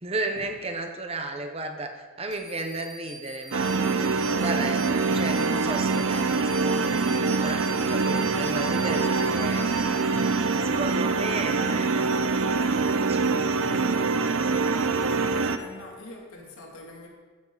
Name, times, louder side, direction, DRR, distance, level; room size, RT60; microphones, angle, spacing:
voice 1, 0.0-3.8 4.4-9.7 10.6-13.6, right 2 dB, 30° right, 5 dB, 1.1 m, -34 dB
sound 1, 2.3-10.8, equal, 55° left, 2.5 m, -44 dB
sound 2, 3.5-15.6, right 4 dB, 70° right, 0.7 m, -24 dB
voice 2, 15.6-17.1, left 1 dB, 85° left, -2 dB, 2.9 m, -44 dB
15.0 x 9.7 x 4.1 m, 1.5 s
head